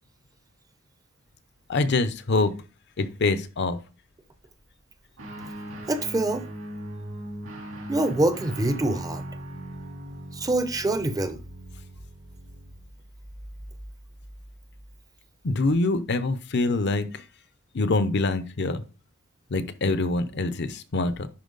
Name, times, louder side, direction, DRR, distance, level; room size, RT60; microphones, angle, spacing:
voice 1, 1.7-2.5 3.0-3.8 15.4-17.2 17.7-18.8 19.5-21.3, left 3 dB, 55° left, 0.7 m, -25 dB
Guitar, 5.2-12.8, right 1 dB, 70° right, 3.0 m, -39 dB
voice 2, 5.7-6.4 7.9-9.2 10.3-11.4, right 2 dB, 15° right, 0.7 m, -25 dB
10.5 x 4.4 x 3.9 m
head